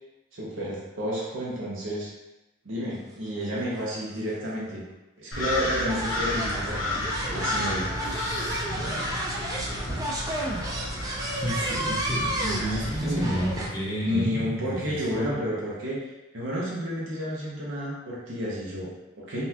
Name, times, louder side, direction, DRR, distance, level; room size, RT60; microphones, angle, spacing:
voice 1, 0.3-2.1 2.6-4.8 5.2-8.0 12.6-13.4 14.0-19.5, equal, 80° right, -6 dB, 0.8 m, -31 dB
sound 1, 3.4-3.5 3.6-3.9 4.9-5.0 5.9-13.7, right 1 dB, 20° right, 0.4 m, -32 dB
sound 2, 5.3-13.0, left 1 dB, 90° left, 0.8 m, -32 dB
voice 2, 8.0-9.5 10.4-11.0 11.3-14.8 15.1-15.4, right 1 dB, 20° left, -8 dB, 0.7 m, -32 dB
3.9 x 2.3 x 2.7 m, 1.0 s
head